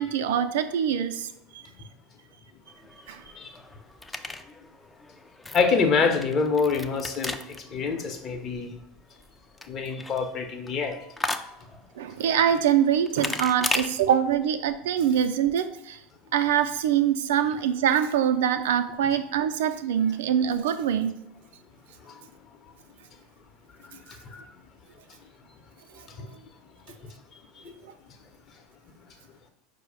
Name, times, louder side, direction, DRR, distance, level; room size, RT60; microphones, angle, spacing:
voice 1, 0.0-1.6 3.1-3.2 12.0-16.0 16.3-21.2, right 9 dB, 70° right, 8 dB, 0.3 m, -24 dB
sound 1, 2.7-13.9, left 2 dB, 10° left, 0.3 m, -37 dB
voice 2, 5.5-8.7 9.7-11.0 11.3-11.5 22.1-22.2 23.8-24.4 26.2-26.3 27.6-27.7, left 5 dB, 40° left, 5 dB, 0.7 m, -26 dB
4.8 x 2.1 x 4.7 m, 0.86 s
hypercardioid pair, 80°, 0 cm